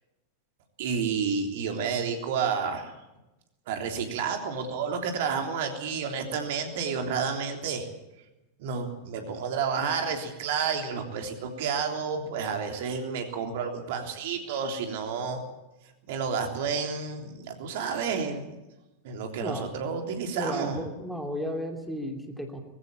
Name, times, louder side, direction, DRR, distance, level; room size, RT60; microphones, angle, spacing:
voice 1, 0.8-2.9 3.7-7.9 8.6-15.4 16.1-18.5 19.0-20.8, right 6 dB, 50° right, 4 dB, 3.4 m, -30 dB
voice 2, 20.3-22.6, equal, ahead, 3 dB, 2.8 m, -33 dB
21.0 x 16.0 x 8.8 m, 0.99 s
figure-of-eight pair, 90°, 0 cm